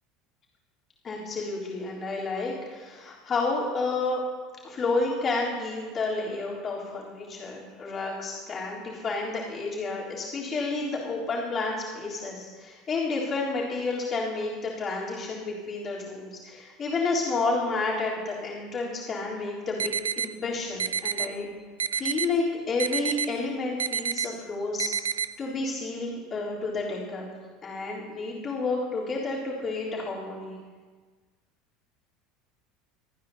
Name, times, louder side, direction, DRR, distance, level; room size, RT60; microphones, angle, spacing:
voice 1, 1.0-4.2 4.6-21.5 21.9-24.9 25.4-27.3 27.6-30.5, left 3 dB, 35° left, -6 dB, 3.8 m, -30 dB
sound 1, 19.8-20.3 20.8-21.3 21.8-22.3 22.8-23.3 23.8-24.3 24.8-25.3, right 8 dB, 85° right, 0.3 m, -28 dB
25.0 x 9.4 x 2.9 m, 1.4 s
hypercardioid pair, 75°, 0 cm